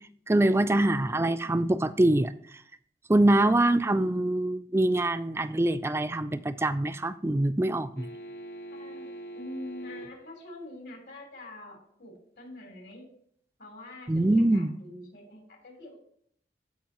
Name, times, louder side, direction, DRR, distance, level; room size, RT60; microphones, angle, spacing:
voice 1, 0.3-2.3 3.1-8.1 14.1-14.7, right 1 dB, 15° right, 12 dB, 0.3 m, -24 dB
voice 2, 3.6-4.2 8.7-13.1 13.6-15.9, left 1 dB, 75° left, 1 dB, 3.4 m, -45 dB
sound 1, 8.0-10.3 12.9-13.0, right 1 dB, 60° left, 0.7 m, -42 dB
14.5 x 5.4 x 2.9 m, 0.66 s
head